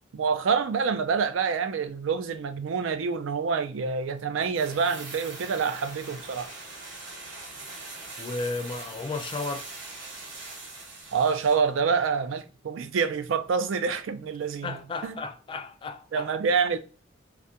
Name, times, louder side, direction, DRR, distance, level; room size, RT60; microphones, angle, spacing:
voice 1, 0.1-6.5 11.1-15.2 16.1-16.8, right 5 dB, 85° right, 0.4 m, -27 dB
sound 1, 4.4-11.7 12.0-12.1, right 3 dB, 70° right, 0.9 m, -42 dB
voice 2, 8.2-9.7 14.6-16.3, left 3 dB, 25° left, 0.3 m, -34 dB
2.3 x 2.1 x 2.7 m
head